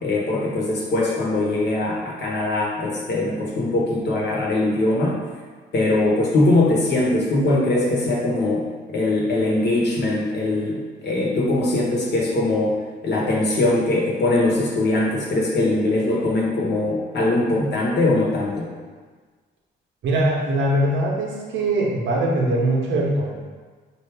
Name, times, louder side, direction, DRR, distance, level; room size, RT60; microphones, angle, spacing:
voice 1, 0.0-5.2 5.7-12.8 13.0-18.7, left 2 dB, 60° left, -3 dB, 1.1 m, -21 dB
voice 2, 20.0-23.3, right 1 dB, 75° right, -2 dB, 0.9 m, -21 dB
4.7 x 2.7 x 3.4 m, 1.5 s
cardioid pair, 90°, 20 cm